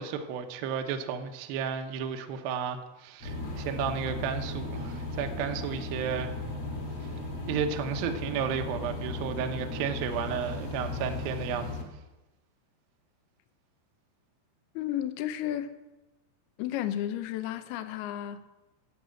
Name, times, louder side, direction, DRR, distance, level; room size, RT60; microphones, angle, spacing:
voice 1, 0.0-6.3 7.5-11.9, right 7 dB, 75° right, 6 dB, 2.3 m, -33 dB
sound 1, 3.2-11.8, left 2 dB, 50° left, 1.7 m, -36 dB
voice 2, 14.8-15.7 16.6-18.4, left 11 dB, 80° left, 9 dB, 2.4 m, -32 dB
12.0 x 7.3 x 8.8 m, 1.0 s
omnidirectional pair, 5.3 m